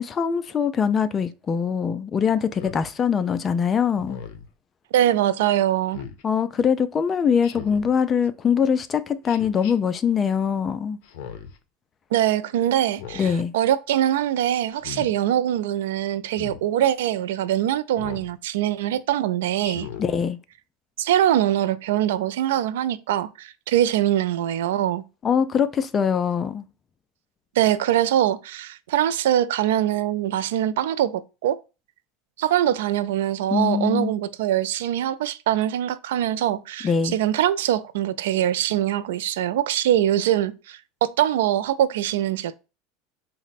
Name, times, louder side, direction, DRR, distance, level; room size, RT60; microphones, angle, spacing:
voice 1, 0.0-4.2 6.2-11.0 13.2-13.5 20.0-20.4 25.2-26.7 33.5-34.1 36.8-37.2, left 7 dB, 25° left, 0.3 m, -23 dB
Speech synthesizer, 2.5-2.8 4.0-4.5 5.9-6.2 7.4-7.9 9.2-9.7 11.0-11.6 12.9-13.4 14.7-15.1 16.3-16.6 18.0-18.3 19.6-20.1, left 8 dB, 60° left, 0.6 m, -38 dB
voice 2, 4.9-6.0 12.1-19.9 21.0-25.0 27.6-31.6 32.4-42.6, right 11 dB, 90° right, 0.3 m, -23 dB
4.1 x 2.1 x 4.0 m
supercardioid pair, 145°, 0 cm